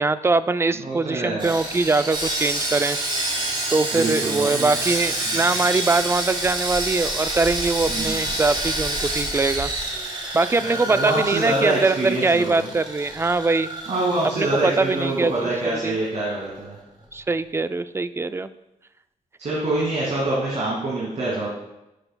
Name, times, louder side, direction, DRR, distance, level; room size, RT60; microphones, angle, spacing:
voice 1, 0.0-3.0 3.7-9.7 10.3-13.7 14.2-15.5 15.8-15.9 17.1-18.5, right 3 dB, 20° right, 13 dB, 0.3 m, -22 dB
voice 2, 0.8-1.5 3.9-4.7 7.9-8.1 10.6-12.7 13.9-16.8 19.4-21.5, right 2 dB, 55° right, -6 dB, 2.1 m, -25 dB
Sawing, 1.4-15.6 15.9-16.1 16.5-16.7, right 1 dB, 35° right, 2.1 m, -28 dB
11.0 x 6.7 x 2.2 m, 0.91 s
cardioid pair, 85°, 14 cm